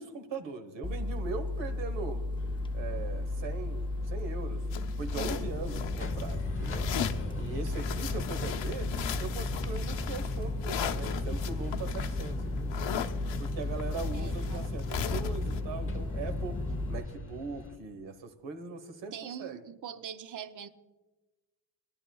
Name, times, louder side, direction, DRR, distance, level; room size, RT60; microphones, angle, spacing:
voice 1, 0.0-2.2 2.7-6.9 7.4-8.9 9.2-12.8 13.4-16.6 16.9-19.6, right 4 dB, 75° right, 8 dB, 1.3 m, -40 dB
sound 1, 0.8-17.0, left 2 dB, 10° left, 0.4 m, -34 dB
sound 2, 2.4-17.8, left 4 dB, 30° left, 0.8 m, -45 dB
sound 3, 4.7-6.3 6.6-7.3 7.7-15.6, left 9 dB, 85° left, 0.8 m, -38 dB
voice 2, 14.1-14.7 19.1-20.7, right 8 dB, 45° right, 11 dB, 0.6 m, -42 dB
21.5 x 11.0 x 2.3 m, 1.2 s
wide cardioid pair, 160°, 45 cm